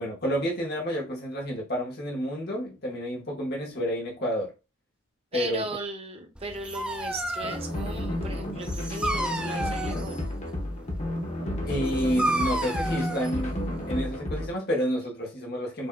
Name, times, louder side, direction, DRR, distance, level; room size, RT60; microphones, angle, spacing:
voice 1, 0.0-4.5 5.3-5.6 11.7-13.6 13.9-15.9, equal, 45° left, 1.5 m, -29 dB
voice 2, 5.3-10.3, right 2 dB, 25° right, 0.9 m, -37 dB
Dog, 6.3-14.2, right 1 dB, 5° right, 0.4 m, -33 dB
sound 1, 7.4-14.5, left 1 dB, 30° left, 1.1 m, -32 dB
5.3 x 2.8 x 2.3 m
head